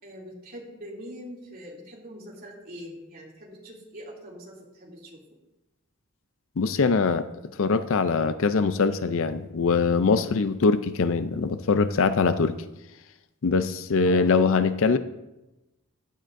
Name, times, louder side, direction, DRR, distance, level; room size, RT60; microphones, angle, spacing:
voice 1, 0.0-5.2 14.0-14.3, equal, 45° right, -3 dB, 2.8 m, -43 dB
voice 2, 6.6-7.2 7.6-12.6 13.4-15.0, left 4 dB, 60° left, 12 dB, 0.5 m, -22 dB
15.5 x 10.0 x 2.6 m, 0.99 s
head